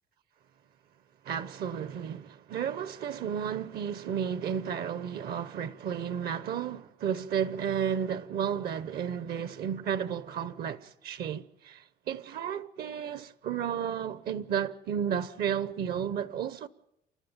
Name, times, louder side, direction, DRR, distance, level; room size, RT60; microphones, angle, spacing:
voice 1, 1.3-16.7, right 8 dB, 65° right, 0.9 m, -33 dB
29.5 x 12.5 x 9.0 m
cardioid pair, 110°, 17 cm